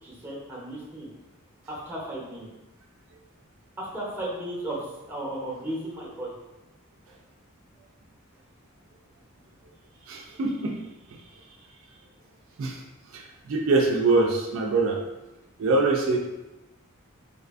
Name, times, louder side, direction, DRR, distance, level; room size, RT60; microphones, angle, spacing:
voice 1, 0.0-1.1 1.7-2.5 3.8-6.3, right 1 dB, 10° right, -5 dB, 0.6 m, -35 dB
voice 2, 10.1-10.7 12.6-12.8 13.1-13.2 13.5-15.0 15.6-16.2, right 3 dB, 65° right, 1 dB, 0.3 m, -23 dB
2.6 x 2.4 x 2.4 m, 1.0 s
head